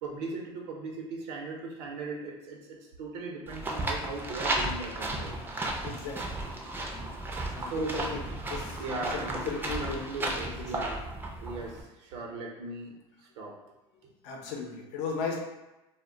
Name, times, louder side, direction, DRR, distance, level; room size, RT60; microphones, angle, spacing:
voice 1, 0.0-5.3 7.6-8.1 8.8-9.5 9.8-11.0 11.4-12.9 13.4-13.6, right 3 dB, 80° right, -1 dB, 0.6 m, -38 dB
sound 1, 3.5-11.8, right 2 dB, 15° right, 0.4 m, -34 dB
voice 2, 5.8-6.4 7.5-8.2 8.5-10.0 10.4-10.7 14.2-15.4, left 5 dB, 75° left, 1 dB, 0.6 m, -36 dB
2.2 x 2.1 x 3.6 m, 1.0 s
supercardioid pair, 120°, 14 cm